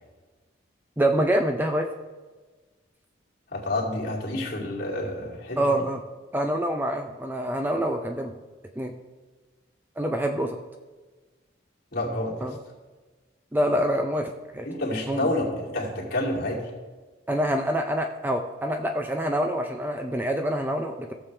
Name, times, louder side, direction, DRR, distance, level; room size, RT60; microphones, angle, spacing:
voice 1, 1.0-1.9 5.6-6.0 6.3-8.4 8.8-8.9 10.0-10.6 12.4-12.6 13.5-14.7 15.1-15.3 17.3-21.1, right 1 dB, 10° right, 4 dB, 0.4 m, -26 dB
voice 2, 3.5-5.8 11.9-12.5 14.6-16.7, left 1 dB, 50° left, -5 dB, 2.6 m, -29 dB
15.5 x 7.1 x 3.3 m, 1.3 s
head